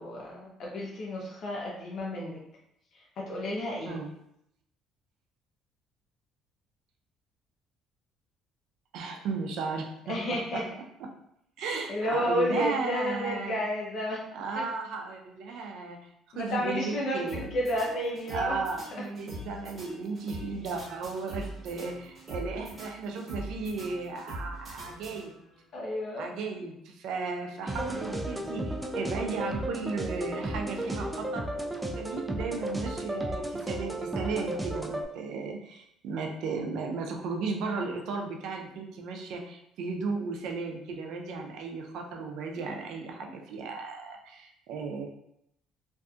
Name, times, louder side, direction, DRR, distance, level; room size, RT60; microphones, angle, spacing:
voice 1, 0.0-2.4 2.9-4.0 10.1-10.6 11.6-14.2 14.6-14.7 15.5-15.6 16.3-18.6 18.9-19.0 20.5-20.6 25.7-26.3, equal, 60° left, -3 dB, 0.5 m, -31 dB
voice 2, 8.9-9.9 10.5-10.6 11.6-13.6 14.3-16.1 16.3-17.5 18.3-25.3 26.2-31.5 31.8-45.1, right 4 dB, 75° right, 2 dB, 0.4 m, -35 dB
sound 1, 17.3-25.6, equal, 35° right, 1.1 m, -43 dB
sound 2, 27.7-35.0, right 1 dB, 10° right, 0.3 m, -34 dB
2.6 x 2.4 x 2.3 m, 0.77 s
cardioid pair, 105°, 0 cm